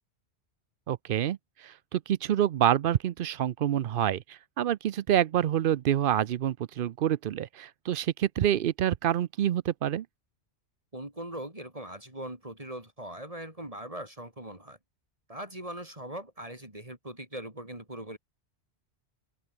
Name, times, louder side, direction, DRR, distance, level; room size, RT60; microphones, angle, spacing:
voice 1, 0.9-10.1, right 11 dB, 60° right, 0.7 m, -27 dB
voice 2, 10.9-14.8 15.3-18.2, right 1 dB, 30° right, 3.9 m, -40 dB
open air
omnidirectional pair, 1.1 m